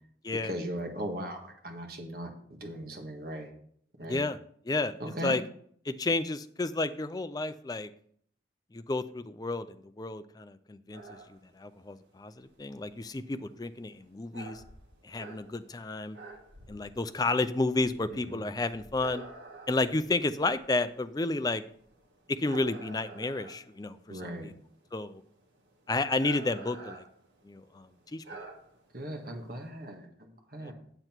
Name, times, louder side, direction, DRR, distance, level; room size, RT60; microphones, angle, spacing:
voice 1, 0.4-3.5 4.0-4.2 5.0-5.4 18.1-18.5 24.1-24.5 28.9-30.7, right 1 dB, 55° right, 2 dB, 1.7 m, -38 dB
voice 2, 4.7-5.4 5.8-7.9 8.7-14.6 15.0-16.2 16.7-19.2 19.7-21.6 22.3-24.5 24.9-25.2 25.9-27.0 27.4-28.2 30.6-30.7, left 2 dB, 20° left, 11 dB, 0.4 m, -31 dB
sound 1, 10.9-29.7, right 3 dB, 85° right, 2.0 m, -50 dB
7.9 x 7.7 x 4.5 m, 0.63 s
head